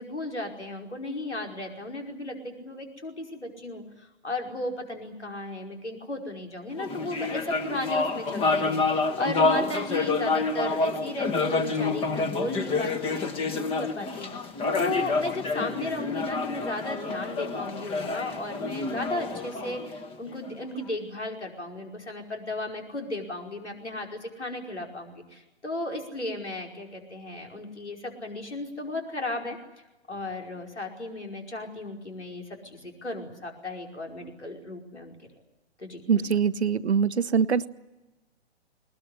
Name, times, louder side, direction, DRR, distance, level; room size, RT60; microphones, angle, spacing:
voice 1, 0.0-14.5 14.8-29.6 30.1-35.2 35.8-36.3, left 2 dB, 90° left, 2 dB, 5.2 m, -35 dB
sound 1, 6.8-20.5, left 3 dB, 15° left, 1.4 m, -28 dB
voice 2, 36.1-37.7, right 6 dB, 75° right, 14 dB, 1.1 m, -23 dB
21.0 x 20.5 x 10.0 m, 1.0 s
figure-of-eight pair, 125°, 33 cm